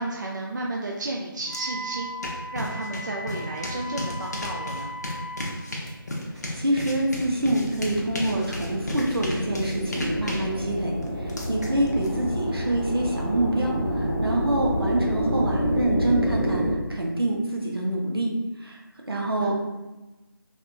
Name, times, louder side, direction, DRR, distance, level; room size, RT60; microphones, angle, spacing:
voice 1, 0.0-2.2 2.5-5.0 11.9-12.0 19.4-19.5, right 2 dB, 55° right, -1 dB, 0.4 m, -32 dB
Wind instrument woodwind instrument, 1.4-5.5, equal, 35° right, 0.8 m, -37 dB
sound 1, 1.5-1.6 1.9-12.1, left 1 dB, 45° left, 0.6 m, -34 dB
voice 2, 6.5-18.3 18.6-18.8 19.1-19.5, right 1 dB, 85° right, -1 dB, 0.9 m, -26 dB
sound 2, 6.6-16.7, equal, 5° left, 1.0 m, -28 dB
3.4 x 2.5 x 2.4 m, 1.1 s
figure-of-eight pair, 160°, 12 cm